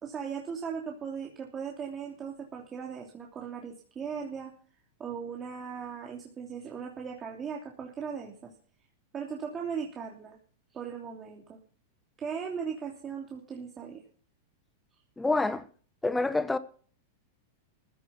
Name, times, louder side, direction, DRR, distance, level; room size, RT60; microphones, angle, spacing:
voice 1, 0.0-4.5 5.0-8.5 9.1-10.4 10.7-11.6 12.2-14.0, right 6 dB, 25° right, 3.0 m, -38 dB
voice 2, 15.2-15.7 16.0-16.6, left 3 dB, 10° left, 1.1 m, -27 dB
15.0 x 9.4 x 5.8 m
hypercardioid pair, 115°, 0 cm